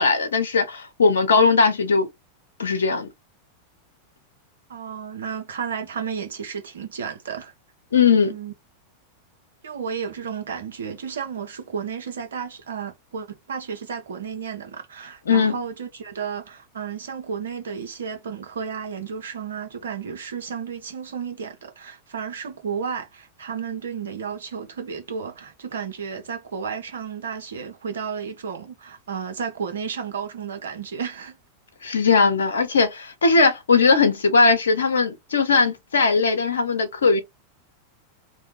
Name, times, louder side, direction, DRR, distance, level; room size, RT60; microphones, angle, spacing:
voice 1, 0.0-2.1 2.6-3.1 7.9-8.3 15.3-15.5 31.8-37.2, left 4 dB, 70° left, 0.8 m, -19 dB
voice 2, 4.7-7.5 8.2-8.5 9.6-31.4, right 6 dB, 65° right, 0.8 m, -32 dB
2.7 x 2.2 x 3.2 m
figure-of-eight pair, 90°, 0 cm